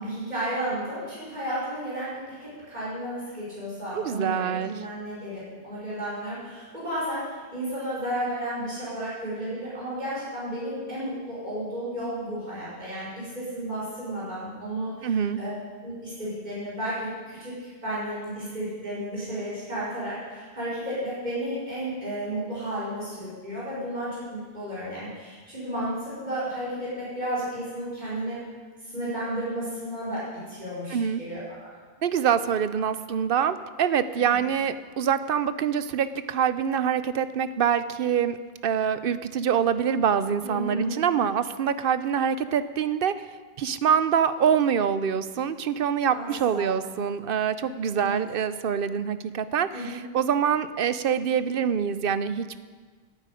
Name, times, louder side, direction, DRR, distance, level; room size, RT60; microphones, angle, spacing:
voice 1, 0.0-15.6 15.8-28.4 28.9-31.7 34.1-34.4 40.4-41.0 46.1-46.8 48.0-48.2 49.7-50.0, right 1 dB, 45° right, -9 dB, 5.2 m, -33 dB
voice 2, 3.9-4.7 15.0-15.4 30.9-31.2 32.0-38.4 38.6-43.1 43.6-52.6, right 8 dB, 65° right, 13 dB, 0.9 m, -25 dB
11.5 x 9.7 x 9.1 m, 1.5 s
omnidirectional pair, 1.0 m